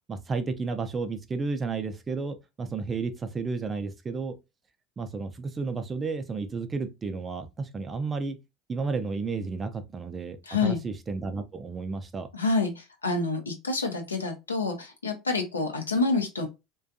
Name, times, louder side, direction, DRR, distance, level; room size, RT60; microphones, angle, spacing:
voice 1, 0.1-4.4 5.0-8.4 8.7-12.3, right 4 dB, 25° right, 0.4 m, -32 dB
voice 2, 10.5-10.8 12.3-16.5, left 3 dB, 90° left, 0.5 m, -28 dB
2.5 x 2.2 x 2.4 m
hypercardioid pair, 75°, 0 cm